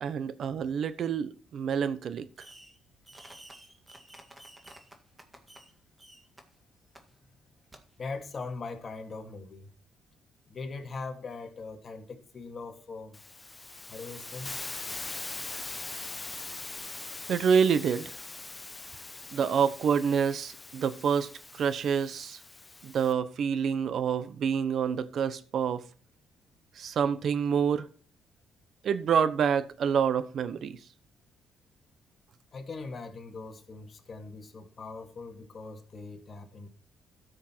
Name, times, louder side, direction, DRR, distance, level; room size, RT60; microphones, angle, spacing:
voice 1, 0.0-2.3 17.3-18.1 19.3-21.3 21.5-22.4 22.8-25.8 26.8-27.9 28.8-30.8, right 7 dB, 60° right, 0.9 m, -27 dB
Fireworks, 2.4-2.8 3.0-5.7 6.0-6.4 6.9-7.0 7.7-7.8, right 1 dB, 15° right, 1.8 m, -51 dB
voice 2, 8.0-9.7 10.5-13.2 13.9-14.6 32.5-36.7, left 3 dB, 40° left, 2.1 m, -41 dB
Hiss, 13.1-23.1, left 3 dB, 20° left, 0.7 m, -42 dB
13.0 x 6.4 x 4.5 m
cardioid pair, 90°, 0 cm